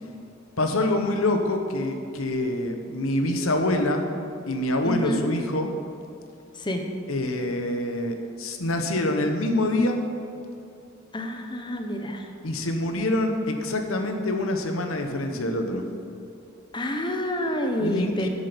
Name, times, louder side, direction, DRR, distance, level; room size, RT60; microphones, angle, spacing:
voice 1, 0.6-4.1 4.5-5.7 7.1-10.0 12.4-15.8 17.8-18.3, left 1 dB, 80° left, 5 dB, 1.1 m, -25 dB
voice 2, 4.8-5.3 6.6-6.8 11.1-12.3 16.7-18.3, equal, 20° left, 4 dB, 1.0 m, -28 dB
10.5 x 8.5 x 5.2 m, 2.6 s
head